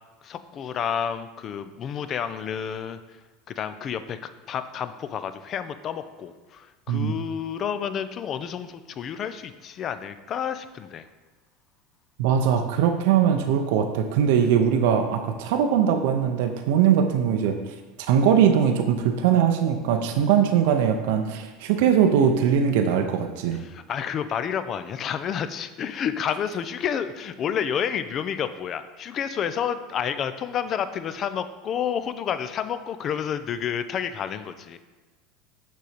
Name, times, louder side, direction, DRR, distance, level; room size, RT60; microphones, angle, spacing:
voice 1, 0.2-3.0 3.5-11.1 23.6-34.8, left 8 dB, 40° left, 11 dB, 0.4 m, -30 dB
voice 2, 12.2-17.6 18.0-23.6, right 8 dB, 70° right, 5 dB, 0.5 m, -21 dB
6.4 x 4.0 x 5.0 m, 1.3 s
hypercardioid pair, 90°, 0 cm